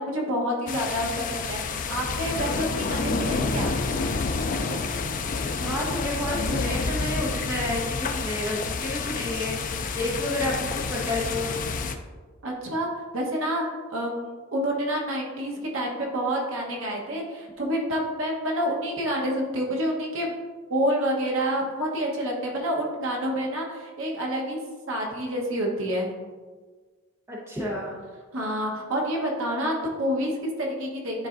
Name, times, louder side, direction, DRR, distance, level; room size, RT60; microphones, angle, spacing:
voice 1, 0.0-3.8 12.4-12.9 13.1-20.3 20.7-24.6 24.9-26.1 28.3-31.3, equal, 70° right, -1 dB, 1.1 m, -28 dB
sound 1, 0.7-12.0, left 4 dB, 35° left, 0.3 m, -29 dB
voice 2, 5.6-11.5 27.3-28.0, left 1 dB, 10° right, -4 dB, 1.0 m, -30 dB
9.6 x 4.0 x 2.5 m, 1.4 s
head